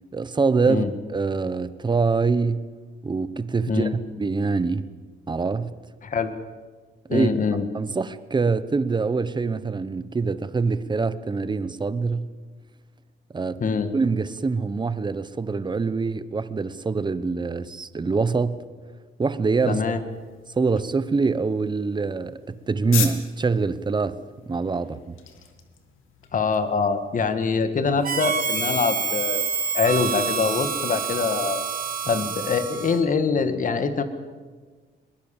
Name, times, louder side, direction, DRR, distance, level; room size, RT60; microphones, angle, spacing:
voice 1, 0.1-0.8 1.1-2.7 3.0-3.9 4.2-4.8 5.3-5.7 7.1-7.3 7.7-12.3 13.3-13.6 13.9-18.6 19.2-19.8 20.6-24.2 24.5-25.1, right 4 dB, 20° right, 1.0 m, -24 dB
voice 2, 6.0-6.3 7.1-7.7 13.6-13.9 19.7-20.0 26.3-29.4 29.7-31.6 32.1-34.0, left 5 dB, 40° left, 2.0 m, -24 dB
sound 1, 20.1-27.2, left 9 dB, 85° left, 2.3 m, -38 dB
Harmonica, 28.0-33.1, right 6 dB, 45° right, 1.8 m, -27 dB
21.5 x 21.0 x 7.4 m
cardioid pair, 120°, 20 cm